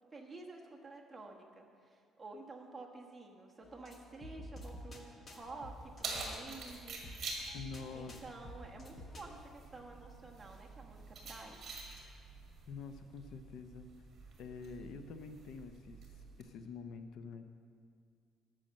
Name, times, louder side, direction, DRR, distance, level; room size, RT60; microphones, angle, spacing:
voice 1, 0.1-7.0 7.9-11.6, right 3 dB, 15° right, -1 dB, 1.3 m, -51 dB
sound 1, 3.6-9.4, left 1 dB, 25° left, 1.2 m, -51 dB
Keys jangling, 5.4-16.4, right 3 dB, 35° right, 2.2 m, -48 dB
voice 2, 7.5-8.2 12.0-12.1 12.7-13.9 14.4-16.0 16.4-17.4, left 5 dB, 65° left, 9 dB, 0.6 m, -47 dB
12.0 x 6.4 x 7.6 m, 2.4 s
cardioid pair, 155°, 0 cm